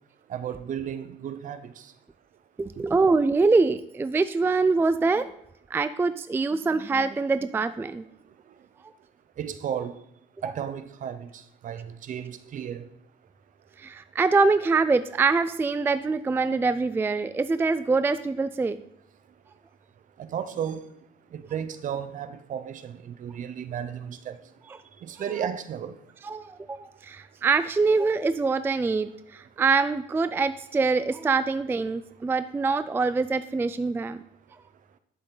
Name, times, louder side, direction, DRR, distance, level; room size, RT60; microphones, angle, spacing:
voice 1, 0.3-1.9 9.4-10.0 10.4-12.9 20.2-20.9 21.3-24.4 25.0-26.0, right 8 dB, 50° right, 0.7 m, -34 dB
voice 2, 2.6-5.3 5.7-8.0 13.8-18.8 25.4-25.5 26.2-34.2, right 4 dB, 15° right, 0.3 m, -24 dB
11.0 x 6.8 x 3.9 m
cardioid pair, 110°, 17 cm